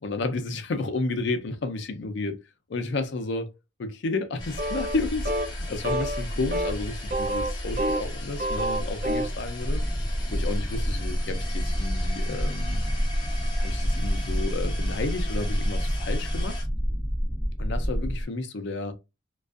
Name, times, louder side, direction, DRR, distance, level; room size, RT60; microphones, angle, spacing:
voice 1, 0.0-2.4 2.7-3.5 3.8-4.4 4.7-9.8 10.3-12.8 13.6-16.6 17.6-18.9, left 3 dB, 60° left, 0.5 m, -31 dB
sound 1, 4.4-16.6, left 1 dB, 20° left, 0.7 m, -34 dB
sound 2, 4.6-5.0 5.3-5.5 5.8-6.2 6.5-6.7 7.1-8.1 8.4-9.4, right 1 dB, 45° right, 0.5 m, -28 dB
sound 3, 9.6-18.2, equal, 10° right, 0.8 m, -28 dB
2.5 x 2.3 x 2.3 m
head